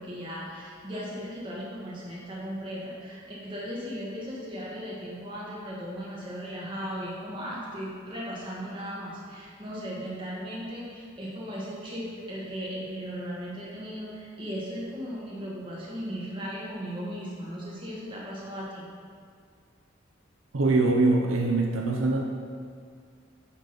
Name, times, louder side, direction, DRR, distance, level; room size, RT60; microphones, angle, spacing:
voice 1, 0.0-18.9, equal, 25° right, -6 dB, 1.8 m, -37 dB
voice 2, 20.5-22.2, right 2 dB, 75° right, 1 dB, 0.7 m, -23 dB
10.0 x 3.9 x 5.2 m, 2.1 s
head